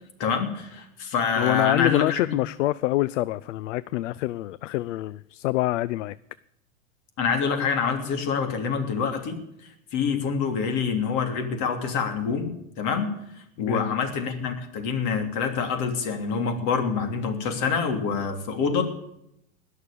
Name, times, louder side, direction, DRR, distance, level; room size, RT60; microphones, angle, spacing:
voice 1, 0.2-2.3 7.2-9.4 9.9-12.5 12.8-13.1 13.6-18.8, left 5 dB, 45° left, 3.1 m, -26 dB
voice 2, 1.4-6.2 13.6-13.9, left 16 dB, 65° left, 0.5 m, -26 dB
20.0 x 6.7 x 8.5 m
hypercardioid pair, 115°, 40 cm